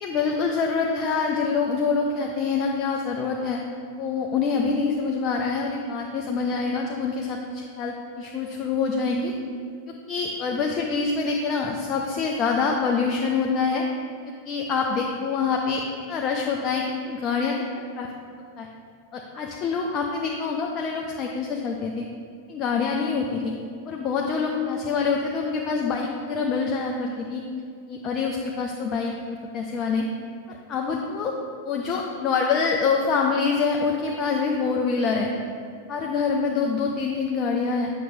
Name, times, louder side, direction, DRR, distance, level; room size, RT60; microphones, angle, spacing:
voice 1, 0.0-3.6 4.0-9.3 10.1-13.8 14.5-17.6 18.0-18.1 18.6-18.7 19.1-22.0 22.5-23.5 23.9-27.4 27.9-30.1 30.5-31.3 31.6-35.3 35.9-37.9, left 5 dB, 35° left, 1 dB, 0.5 m, -25 dB
7.4 x 5.8 x 2.6 m, 2.3 s
figure-of-eight pair, 90°, 0 cm